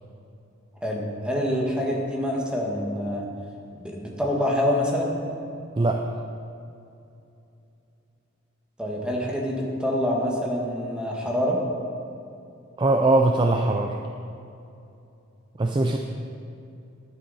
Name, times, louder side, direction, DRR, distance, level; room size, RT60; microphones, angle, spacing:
voice 1, 0.8-3.3 3.8-5.2 8.8-11.6, left 1 dB, 5° right, -2 dB, 1.5 m, -26 dB
voice 2, 12.8-14.0 15.6-16.0, right 2 dB, 25° right, 3 dB, 0.4 m, -21 dB
10.5 x 10.0 x 4.1 m, 2.7 s
head